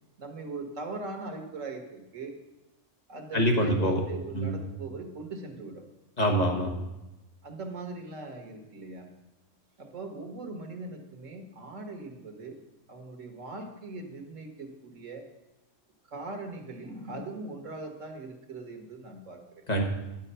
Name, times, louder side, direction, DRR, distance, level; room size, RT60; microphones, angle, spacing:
voice 1, 0.2-2.4 3.1-5.8 7.4-9.1 9.8-15.3 16.1-19.6, right 3 dB, 80° right, 5 dB, 1.7 m, -40 dB
voice 2, 3.3-4.0 4.3-4.6 6.2-6.7 19.7-19.8, equal, 35° left, 0 dB, 1.4 m, -25 dB
11.0 x 7.4 x 5.6 m, 0.99 s
omnidirectional pair, 1.3 m